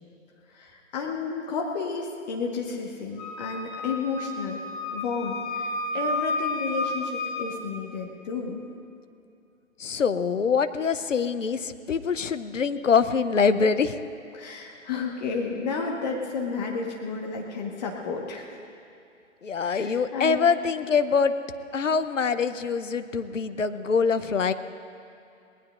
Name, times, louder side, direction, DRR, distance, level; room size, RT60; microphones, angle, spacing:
voice 1, 0.5-4.6 4.9-8.6 14.3-18.5 19.6-20.4, left 5 dB, 35° left, 0 dB, 1.4 m, -32 dB
Wind instrument woodwind instrument, 3.2-7.5, left 2 dB, 15° left, 0.9 m, -31 dB
voice 2, 9.8-14.0 19.4-21.3 21.7-24.5, left 5 dB, 70° left, 11 dB, 0.8 m, -24 dB
26.5 x 19.5 x 2.5 m, 2.6 s
figure-of-eight pair, 125°, 39 cm